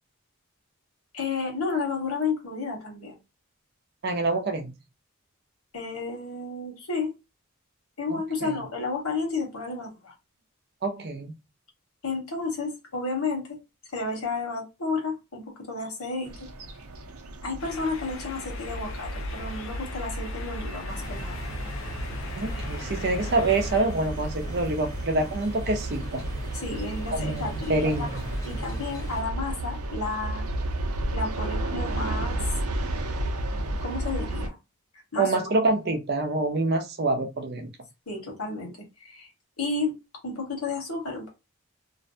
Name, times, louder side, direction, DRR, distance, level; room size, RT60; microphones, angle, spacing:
voice 1, 1.1-3.2 5.7-7.1 8.0-10.1 12.0-13.5 13.9-16.3 17.4-21.4 26.6-28.1 28.4-30.4 31.1-32.4 33.8-34.5 35.1-35.3 38.1-39.3 39.6-39.9 40.2-41.3, left 3 dB, 85° left, 1.2 m, -32 dB
voice 2, 4.0-4.7 8.1-8.6 10.8-11.3 22.3-26.2 27.1-28.1 35.2-37.7, right 2 dB, 50° right, 0.5 m, -26 dB
sound 1, 16.3-34.5, right 1 dB, 90° right, 0.6 m, -33 dB
sound 2, 17.6-23.8, left 5 dB, 60° left, 0.4 m, -42 dB
sound 3, 20.9-29.2, right 1 dB, 15° left, 0.7 m, -42 dB
2.5 x 2.1 x 2.6 m
head